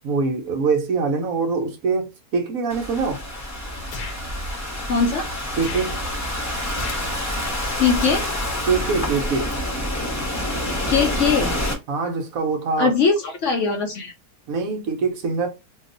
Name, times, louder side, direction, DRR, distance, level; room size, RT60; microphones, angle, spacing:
voice 1, 0.0-3.2 5.6-6.0 8.7-9.5 11.9-12.9 14.5-15.5, right 4 dB, 65° right, 1.1 m, -23 dB
Thunderstorm / Rain, 2.7-11.7, left 1 dB, 15° left, 0.6 m, -27 dB
sound 1, 3.9-4.2 5.5-5.9 6.7-7.0 8.0-8.4, left 5 dB, 90° left, 1.2 m, -35 dB
voice 2, 4.9-5.3 7.8-8.2 10.9-11.6 12.8-14.1, left 5 dB, 65° left, 0.8 m, -20 dB
2.8 x 2.3 x 3.7 m
omnidirectional pair, 1.7 m